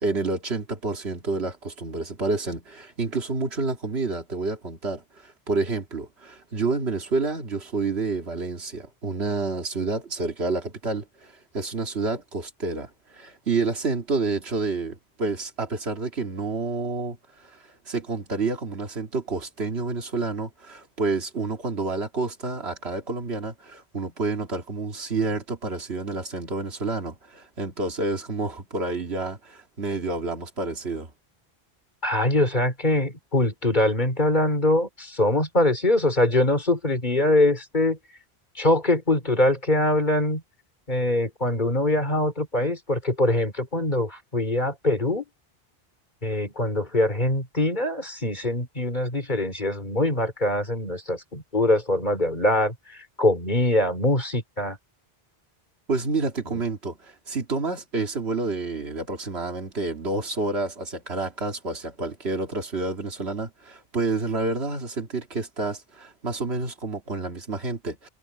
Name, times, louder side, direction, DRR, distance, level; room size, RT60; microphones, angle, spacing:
voice 1, 0.0-31.1 55.9-68.1, right 3 dB, 80° right, 2.3 m, -29 dB
voice 2, 32.0-38.0 38.6-40.4 40.9-45.2 46.2-54.8, left 1 dB, 45° left, 3.8 m, -23 dB
omnidirectional pair, 1.1 m